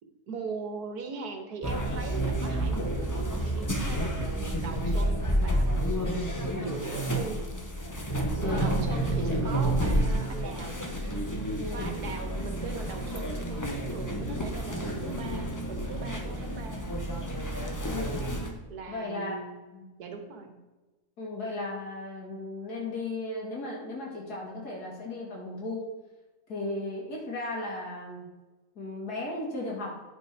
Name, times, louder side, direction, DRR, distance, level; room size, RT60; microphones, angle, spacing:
voice 1, 0.0-6.3 6.6-7.4 8.0-8.1 8.4-10.8 11.7-16.8 18.7-19.6 20.0-20.6, right 5 dB, 85° right, 5 dB, 1.7 m, -40 dB
sound 1, 1.6-18.5, right 1 dB, 15° left, 0.7 m, -30 dB
voice 2, 8.4-8.8 11.6-11.9 17.9-18.3 18.9-19.3 19.7-19.9 21.2-25.8 26.5-28.3 28.8-30.0, left 2 dB, 85° left, -3 dB, 2.8 m, -36 dB
9.7 x 5.6 x 4.6 m, 1.2 s
omnidirectional pair, 1.6 m